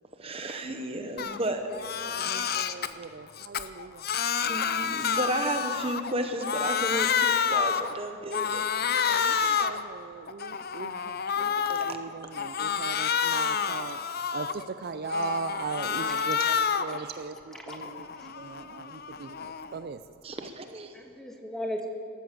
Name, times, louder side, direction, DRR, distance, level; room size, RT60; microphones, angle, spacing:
voice 1, 0.2-1.8 2.1-2.2 4.5-8.7 9.0-9.7 11.9-12.0 20.2-20.9, right 1 dB, 25° right, 6 dB, 0.8 m, -33 dB
Crying sobbing, 1.2-1.4 1.7-2.9 3.4-6.1 6.4-7.9 8.3-9.8 10.3-11.9 12.3-14.7 15.1-17.0 17.4-19.7, left 7 dB, 45° left, 0.6 m, -29 dB
voice 2, 2.1-4.0 9.0-14.0 14.3-20.0, right 5 dB, 45° right, 11 dB, 0.4 m, -39 dB
voice 3, 11.4-12.3 16.1-16.2 17.5-17.9 20.9-21.9, equal, ahead, 1 dB, 1.5 m, -39 dB
14.0 x 13.5 x 7.5 m, 2.9 s
head